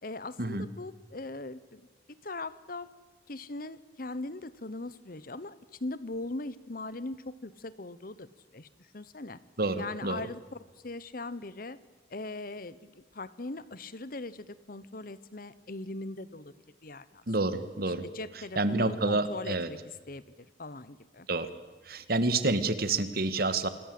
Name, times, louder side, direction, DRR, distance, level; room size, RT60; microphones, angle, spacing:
voice 1, 0.0-2.9 3.3-9.4 9.8-10.6 10.8-11.8 12.1-16.5 16.8-17.2 18.0-19.8 20.1-21.3, left 2 dB, 50° left, 16 dB, 1.1 m, -40 dB
voice 2, 9.6-10.2 17.3-18.0 18.5-19.7 21.3-21.5 21.8-23.7, right 2 dB, 55° right, 12 dB, 1.7 m, -28 dB
27.0 x 21.5 x 7.8 m, 1.3 s
head